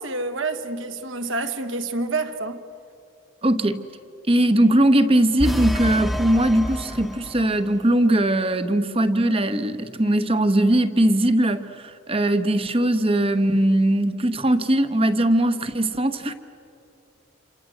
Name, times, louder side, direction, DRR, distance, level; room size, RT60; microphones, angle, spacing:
voice 1, 0.0-2.6, right 3 dB, 70° right, 1.6 m, -28 dB
voice 2, 3.4-3.8 4.3-16.3, right 1 dB, 25° right, 1.1 m, -20 dB
sound 1, 5.4-7.7, equal, ahead, 1.1 m, -28 dB
27.5 x 27.5 x 7.9 m
head